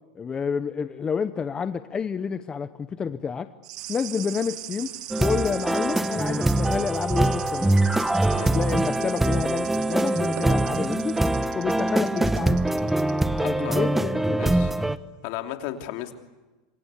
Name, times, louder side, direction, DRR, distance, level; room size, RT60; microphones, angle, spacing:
voice 1, 0.1-3.5 3.9-7.8 8.4-11.2 11.5-12.6 13.3-14.4, left 6 dB, 20° left, 11 dB, 0.9 m, -29 dB
sound 1, 3.6-13.4 13.7-13.8, right 14 dB, 70° right, 2.2 m, -41 dB
sound 2, 3.8-11.4, right 13 dB, 50° right, 2.9 m, -42 dB
sound 3, 5.1-15.0, right 1 dB, 5° right, 1.0 m, -23 dB
voice 2, 13.4-13.9 14.3-14.7 15.2-16.1, left 13 dB, 60° left, 5 dB, 3.0 m, -34 dB
27.0 x 25.0 x 8.4 m, 1.2 s
supercardioid pair, 120°, 4 cm